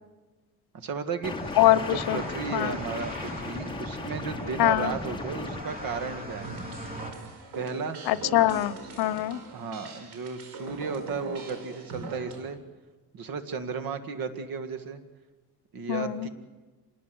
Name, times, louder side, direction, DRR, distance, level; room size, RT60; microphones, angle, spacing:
voice 1, 0.7-1.4 1.8-6.5 7.5-8.0 8.8-9.0 9.5-12.6 13.1-15.0 15.7-16.3, right 5 dB, 65° right, 9 dB, 2.1 m, -34 dB
sound 1, 1.2-5.6, left 3 dB, 10° left, 1.1 m, -37 dB
sound 2, 1.2-7.1, equal, 20° right, 3.9 m, -40 dB
voice 2, 4.6-4.9 8.1-9.4 15.9-16.3, left 14 dB, 75° left, 17 dB, 0.9 m, -23 dB
sound 3, 6.4-12.4, right 3 dB, 90° right, 4.8 m, -41 dB
26.5 x 20.0 x 7.9 m, 1.2 s
cardioid pair, 135°, 38 cm